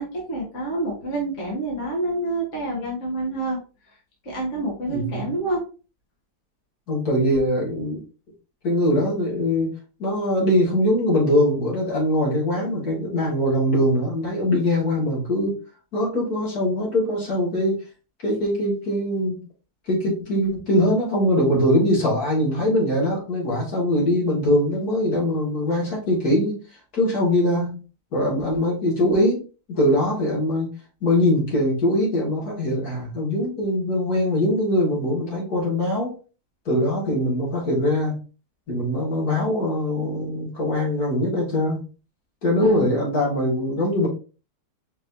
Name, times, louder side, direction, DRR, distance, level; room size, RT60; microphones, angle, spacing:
voice 1, 0.0-3.6 4.2-5.6 42.6-42.9, right 1 dB, 50° left, -4 dB, 1.8 m, -27 dB
voice 2, 4.9-5.3 6.9-8.0 8.6-9.7 10.0-15.6 15.9-17.8 18.2-19.4 19.9-26.5 26.9-27.8 28.1-29.4 29.7-30.7 31.0-36.1 36.7-38.2 38.7-41.8 42.4-44.1, left 1 dB, 65° left, -4 dB, 2.4 m, -22 dB
5.3 x 3.1 x 2.6 m, 0.35 s
omnidirectional pair, 1.7 m